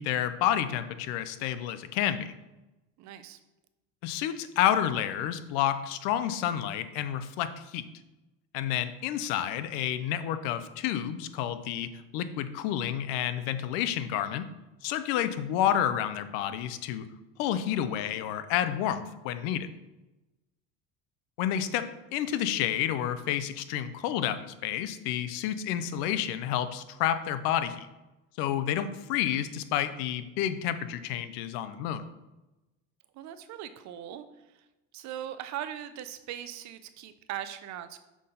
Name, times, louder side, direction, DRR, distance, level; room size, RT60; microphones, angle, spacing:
voice 1, 0.0-2.3 4.0-7.9 8.5-14.5 14.8-17.1 17.4-19.7 21.4-27.9 28.4-32.0, left 10 dB, 85° left, 12 dB, 0.7 m, -30 dB
voice 2, 3.0-3.4 33.1-34.3 34.5-34.6 34.9-38.0, right 11 dB, 55° right, 11 dB, 0.7 m, -39 dB
6.2 x 5.7 x 3.8 m, 1.0 s
cardioid pair, 130°, 34 cm